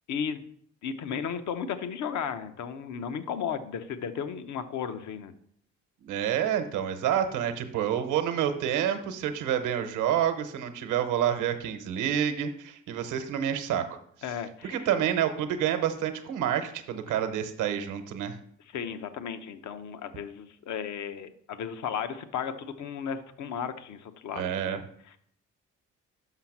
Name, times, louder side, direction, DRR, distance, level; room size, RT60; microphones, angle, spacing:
voice 1, 0.1-0.4 0.8-5.3 14.2-14.8 18.7-24.8 25.1-25.2, left 7 dB, 70° left, 10 dB, 0.8 m, -34 dB
voice 2, 6.0-14.0 14.6-18.4 24.3-24.8, right 9 dB, 85° right, 8 dB, 0.9 m, -28 dB
5.8 x 5.7 x 5.9 m, 0.65 s
cardioid pair, 90°, 30 cm